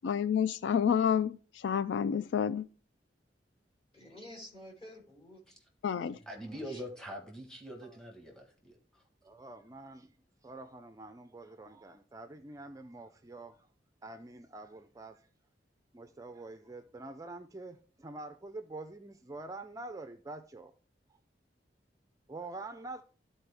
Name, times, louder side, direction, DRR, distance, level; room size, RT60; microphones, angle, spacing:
voice 1, 0.0-2.7 5.8-6.2, left 7 dB, 90° left, 0.3 m, -29 dB
voice 2, 3.9-5.4 5.9-6.8, left 1 dB, 35° left, 3.4 m, -51 dB
voice 3, 6.3-9.0, equal, 5° left, 1.3 m, -44 dB
voice 4, 9.2-10.1 10.4-13.6 14.0-15.2 15.9-20.7 22.3-23.0, right 2 dB, 20° right, 0.4 m, -46 dB
13.0 x 4.3 x 3.3 m
head